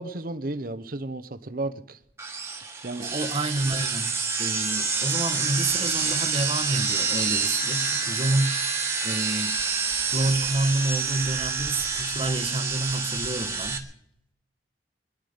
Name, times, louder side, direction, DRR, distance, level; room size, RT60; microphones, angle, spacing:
voice 1, 0.0-2.0 2.8-3.1, right 2 dB, 50° right, 0.9 m, -33 dB
sound 1, 2.2-13.8, right 5 dB, 15° right, 1.6 m, -27 dB
voice 2, 3.0-9.6 10.1-13.9, right 2 dB, 30° right, 1.2 m, -29 dB
23.0 x 11.0 x 5.1 m
head